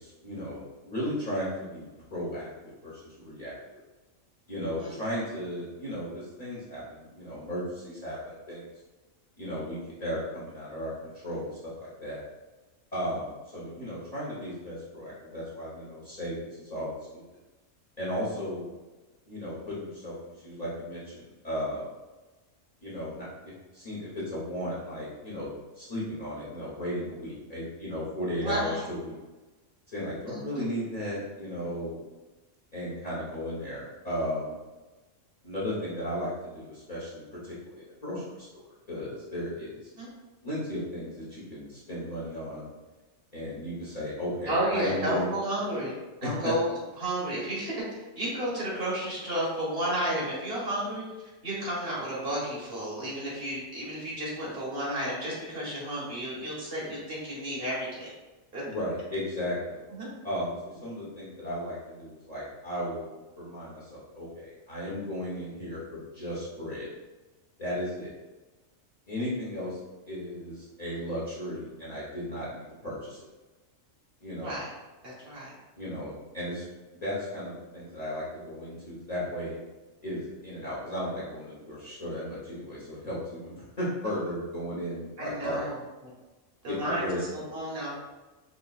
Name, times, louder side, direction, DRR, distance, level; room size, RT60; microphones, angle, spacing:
voice 1, 0.0-2.5 2.8-3.5 4.5-8.7 9.4-10.9 11.2-12.2 12.9-17.2 18.0-18.7 19.3-21.9 22.8-29.1 29.9-32.0 32.7-34.5 35.4-38.6 38.9-39.8 40.4-42.7 43.3-45.3 46.2-46.5 58.7-59.8 60.2-66.9 67.6-68.1 69.1-69.8 70.1-73.3 74.2-74.5 75.8-76.6 77.0-79.6 80.0-85.6 86.7-87.2, equal, 35° left, -9 dB, 1.0 m, -35 dB
voice 2, 28.4-28.8 30.3-30.7 40.0-40.1 44.5-45.9 46.2-46.7 47.0-47.7 48.1-51.0 51.4-58.1 58.5-58.6 59.9-60.1 74.4-74.7 75.0-75.5 85.2-85.8 86.6-87.1 87.3-87.9, right 1 dB, 50° right, -6 dB, 1.4 m, -32 dB
5.0 x 2.8 x 2.3 m, 1.2 s
omnidirectional pair, 1.3 m